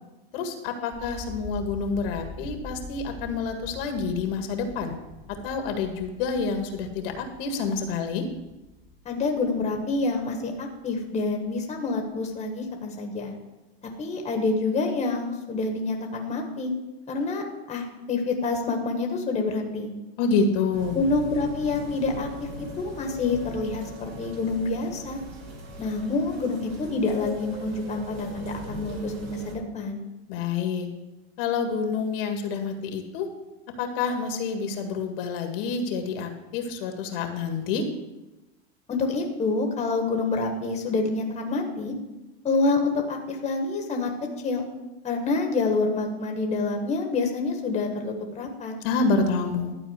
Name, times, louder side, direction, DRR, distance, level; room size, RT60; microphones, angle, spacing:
voice 1, 0.3-5.0 5.4-8.3 20.2-21.0 30.3-30.9 31.4-33.3 33.8-37.9 48.8-49.7, left 4 dB, 60° left, 5 dB, 1.8 m, -28 dB
sound 1, 0.9-10.9 11.2-11.9, left 2 dB, 25° right, 2.0 m, -44 dB
voice 2, 9.0-13.3 14.0-16.7 17.1-19.9 20.9-22.3 22.6-25.2 25.8-30.0 38.9-41.9 42.4-44.1 44.4-44.7 45.0-48.7, left 3 dB, 20° left, 2 dB, 1.6 m, -27 dB
sound 2, 20.7-29.6, right 1 dB, 75° right, 3.1 m, -39 dB
12.5 x 4.3 x 8.1 m, 1.0 s
supercardioid pair, 130°, 31 cm